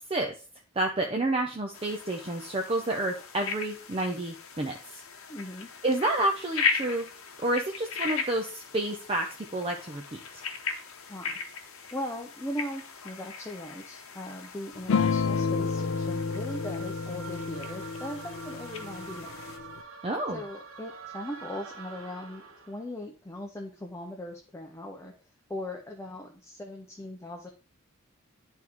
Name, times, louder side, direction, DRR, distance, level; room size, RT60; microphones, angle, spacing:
voice 1, 0.8-5.0 5.8-7.1 7.4-10.4 20.0-20.4, right 2 dB, 25° right, 2 dB, 0.5 m, -29 dB
sound 1, 1.7-19.6, left 5 dB, 85° left, 0.9 m, -38 dB
voice 2, 5.3-5.7 11.1-11.4 11.9-19.5 20.3-25.1 25.5-27.5, left 1 dB, 15° left, 1 dB, 0.6 m, -39 dB
sound 2, 14.9-19.8, left 5 dB, 65° left, 0.4 m, -30 dB
sound 3, 15.6-22.8, right 5 dB, 70° right, 1.0 m, -46 dB
10.5 x 3.6 x 3.0 m, 0.36 s
head